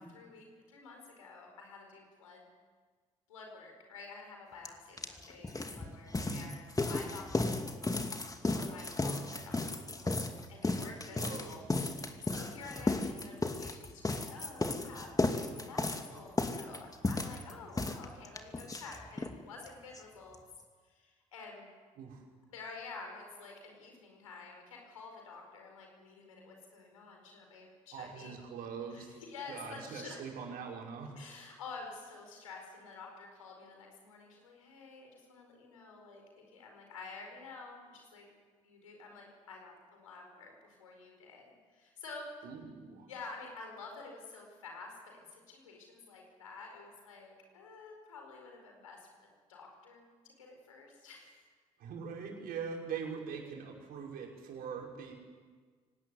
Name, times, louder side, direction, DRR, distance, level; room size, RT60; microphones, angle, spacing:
voice 1, 0.0-2.5 3.3-7.9 8.3-10.2 10.5-20.4 20.8-21.7 22.5-28.4 28.9-30.2 31.2-38.3 38.6-42.3 43.1-51.4, left 4 dB, 85° left, 2 dB, 4.7 m, -50 dB
sound 1, 4.6-4.7 5.0-19.4 19.6-19.7 19.9-20.0 20.3-20.4, left 2 dB, 20° left, 2.6 m, -34 dB
voice 2, 11.1-11.7 22.0-22.2 27.9-29.1 29.5-31.2 42.4-43.1 51.8-55.1, right 6 dB, 65° right, 0 dB, 5.7 m, -42 dB
24.0 x 19.0 x 9.6 m, 1.5 s
figure-of-eight pair, 45°, 17 cm